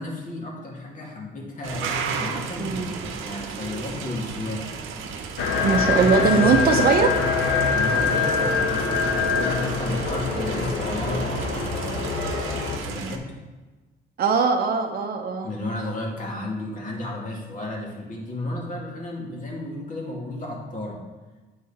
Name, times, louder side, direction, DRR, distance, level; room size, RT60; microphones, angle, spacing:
voice 1, 0.0-4.8 5.9-6.9 7.7-12.2 12.8-13.3 15.4-21.0, left 2 dB, 40° left, -2 dB, 2.2 m, -33 dB
sound 1, 1.6-13.2, right 6 dB, 85° right, 0.8 m, -34 dB
sound 2, 5.4-12.8, left 5 dB, 90° left, 0.9 m, -24 dB
voice 2, 5.6-7.1 14.2-15.5, right 5 dB, 50° right, 3 dB, 0.7 m, -20 dB
8.5 x 4.7 x 4.2 m, 1.2 s
cardioid pair, 90°, 20 cm